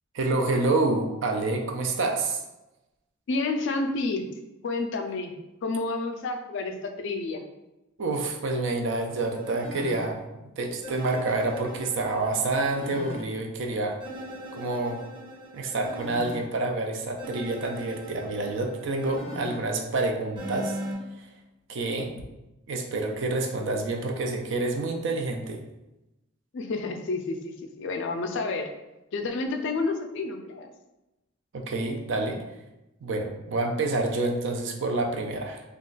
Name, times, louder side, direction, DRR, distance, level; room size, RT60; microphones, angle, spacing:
voice 1, 0.1-2.4 8.0-10.2 10.6-14.0 14.5-15.0 15.5-20.8 21.2-21.3 21.7-22.2 22.7-25.6 31.5-32.4 33.0-35.6, right 2 dB, 60° right, 3 dB, 0.4 m, -28 dB
voice 2, 3.3-4.3 4.6-5.3 5.6-7.4 26.5-28.7 29.1-30.7, left 3 dB, 60° left, 5 dB, 0.3 m, -30 dB
sound 1, 9.1-10.0 10.8-13.2 14.0-16.4 17.2-19.6 20.4-20.9, equal, 25° right, 0.7 m, -39 dB
2.3 x 2.2 x 3.8 m, 0.98 s
head